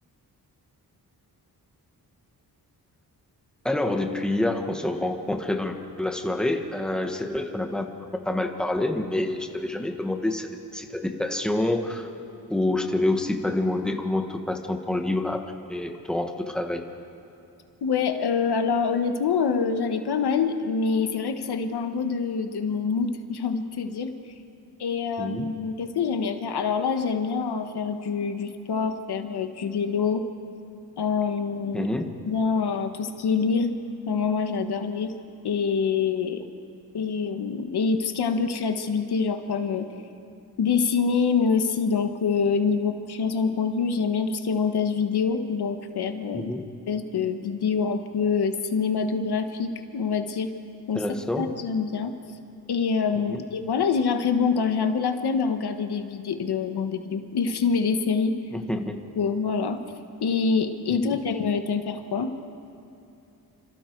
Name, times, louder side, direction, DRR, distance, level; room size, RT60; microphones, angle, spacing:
voice 1, 3.6-7.9 8.2-12.1 12.5-15.4 15.7-16.8 25.2-25.5 31.7-32.1 46.3-46.7 50.9-51.5 53.3-53.4 58.5-59.0 60.9-61.2, left 1 dB, ahead, 4 dB, 1.3 m, -27 dB
voice 2, 17.8-24.1 24.8-30.2 31.0-31.9 32.3-33.7 34.1-35.1 35.4-36.4 36.9-39.9 40.6-46.5 46.9-50.5 50.9-51.0 51.4-52.1 52.7-58.3 59.2-59.8 60.2-62.3, left 5 dB, 80° left, 7 dB, 1.4 m, -25 dB
29.0 x 26.0 x 4.6 m, 2.7 s
wide cardioid pair, 170°, 38 cm